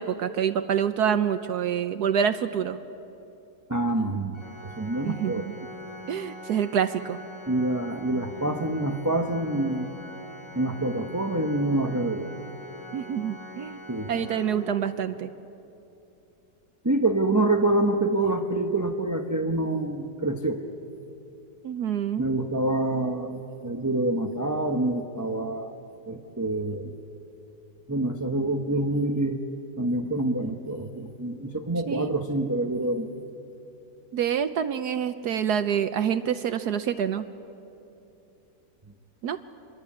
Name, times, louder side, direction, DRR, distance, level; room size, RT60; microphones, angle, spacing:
voice 1, 0.0-2.8 5.0-5.5 6.1-7.2 12.9-13.8 14.1-15.3 21.6-22.3 31.9-32.2 34.1-37.2 39.2-39.4, right 8 dB, 70° right, 10 dB, 1.2 m, -27 dB
voice 2, 3.7-5.5 7.5-9.9 10.5-12.3 13.9-14.3 16.8-20.6 22.2-25.7 26.1-26.9 27.9-29.4 29.8-33.1, right 2 dB, 15° right, 4 dB, 0.8 m, -26 dB
Organ, 4.3-15.2, left 1 dB, 50° left, 3.2 m, -43 dB
26.0 x 22.5 x 8.6 m, 2.8 s
omnidirectional pair, 1.9 m